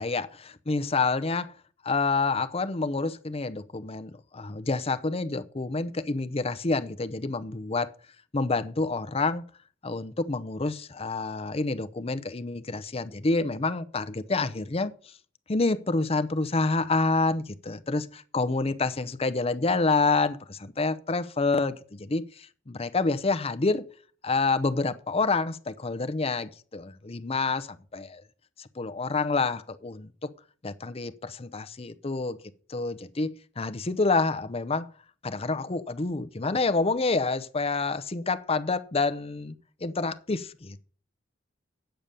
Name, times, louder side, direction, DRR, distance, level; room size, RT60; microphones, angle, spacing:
voice 1, 0.0-1.5 1.8-7.9 8.3-9.4 9.8-15.1 15.5-23.9 24.2-28.2 28.6-30.3 30.6-32.4 32.7-34.9 35.2-39.5 39.8-40.8, left 3 dB, 30° left, 0.6 m, -28 dB
9.0 x 6.9 x 6.6 m
head